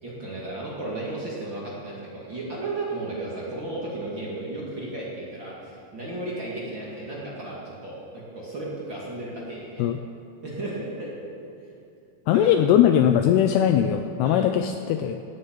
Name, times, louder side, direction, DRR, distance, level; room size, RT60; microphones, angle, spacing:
voice 1, 0.0-9.9 10.4-11.1 12.3-12.5 14.2-14.5, right 2 dB, 35° right, -6 dB, 2.4 m, -34 dB
voice 2, 12.3-15.2, left 10 dB, 80° left, 7 dB, 2.4 m, -20 dB
18.0 x 7.7 x 8.4 m, 2.6 s
omnidirectional pair, 5.1 m